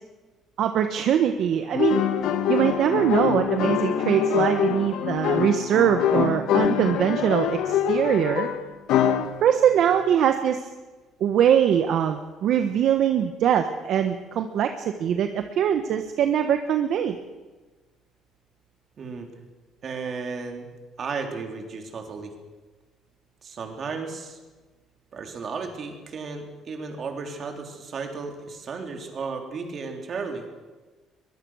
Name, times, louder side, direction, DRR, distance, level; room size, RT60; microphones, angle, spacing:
voice 1, 0.6-2.0 2.5-8.5 9.4-10.6 11.2-17.2, right 9 dB, 55° right, 7 dB, 1.3 m, -22 dB
sound 1, 1.7-9.4, left 9 dB, 75° left, 1.9 m, -24 dB
voice 2, 19.0-19.3 19.8-20.7 21.0-22.3 23.4-24.4 25.1-30.5, right 4 dB, 35° right, 4 dB, 3.6 m, -34 dB
23.0 x 21.5 x 6.4 m, 1.3 s
cardioid pair, 160°, 0 cm